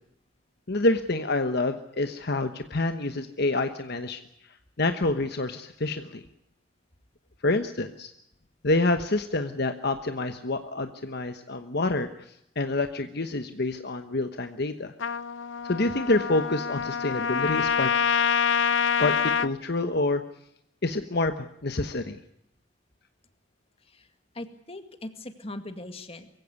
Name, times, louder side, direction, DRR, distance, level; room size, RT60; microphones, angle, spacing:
voice 1, 0.7-4.5 4.8-6.2 7.4-8.1 8.6-14.9 15.7-17.9 19.0-20.2 20.8-22.2, left 2 dB, 55° left, 8 dB, 1.2 m, -27 dB
Trumpet, 15.0-19.5, left 6 dB, 75° left, 0.8 m, -26 dB
voice 2, 24.3-26.3, left 1 dB, 30° left, 8 dB, 2.1 m, -40 dB
23.0 x 16.0 x 9.6 m, 0.76 s
head